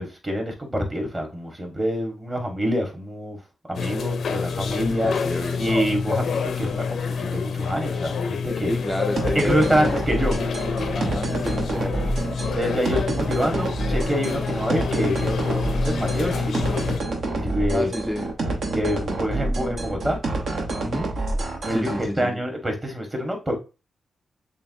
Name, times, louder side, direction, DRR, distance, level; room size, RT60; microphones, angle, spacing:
voice 1, 0.0-3.4 3.7-5.1 5.6-8.7 9.3-10.4 12.6-16.8 17.3-18.0 18.7-20.2 21.6-23.6, equal, 20° right, 1.4 m, -26 dB
sound 1, 3.7-17.0, left 5 dB, 80° left, 0.4 m, -27 dB
voice 2, 5.0-5.6 8.7-9.9 10.9-12.2 17.7-18.3 20.8-21.1 21.7-22.4, equal, ahead, 0.3 m, -30 dB
sound 2, 9.2-22.0, right 2 dB, 70° right, 0.9 m, -27 dB
6.8 x 2.3 x 2.6 m
cardioid pair, 90°, 0 cm